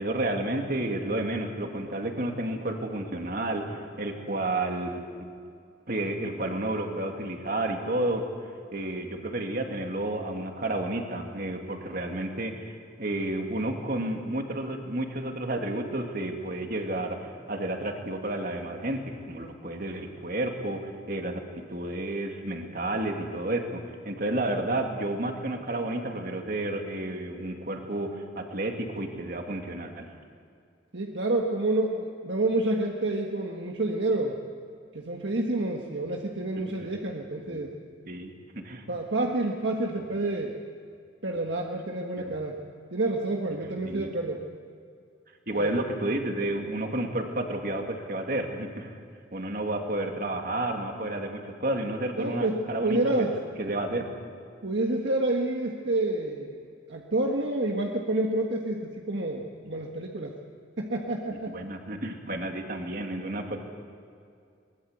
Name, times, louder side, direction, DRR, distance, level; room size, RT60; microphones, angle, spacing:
voice 1, 0.0-5.0 5.9-8.2 8.7-21.4 21.7-30.1 37.5-37.7 38.1-38.3 38.6-38.8 42.2-42.3 43.8-44.1 45.5-49.0 49.3-53.3 53.6-54.1 61.5-63.6, right 1 dB, 50° right, 3 dB, 2.4 m, -31 dB
voice 2, 30.9-34.4 34.9-37.7 38.9-40.6 41.2-42.6 42.9-44.4 45.5-45.7 52.2-53.3 54.6-56.6 56.9-60.3 60.8-61.6, right 2 dB, 65° right, 1 dB, 1.6 m, -28 dB
22.5 x 20.5 x 8.2 m, 2.3 s
head